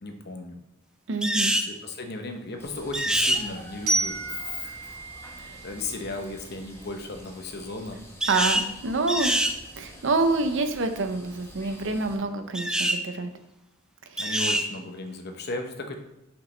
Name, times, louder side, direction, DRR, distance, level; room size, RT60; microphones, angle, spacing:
voice 1, 0.0-0.6 1.6-4.8 5.6-8.0 14.2-16.0, left 2 dB, 50° left, 5 dB, 0.8 m, -35 dB
voice 2, 1.1-1.5 5.4-5.6 8.3-9.3 9.8-13.3 14.1-14.3, right 3 dB, 60° right, 8 dB, 0.6 m, -27 dB
sound 1, 1.2-1.7 2.9-3.4 8.2-8.7 9.1-9.6 12.5-13.0 14.2-14.7, right 1 dB, 5° right, 0.3 m, -25 dB
sound 2, 2.6-12.2, equal, 10° left, 1.1 m, -47 dB
Glockenspiel, 3.9-6.7, right 2 dB, 40° right, 2.1 m, -32 dB
5.8 x 5.1 x 3.3 m, 0.89 s
head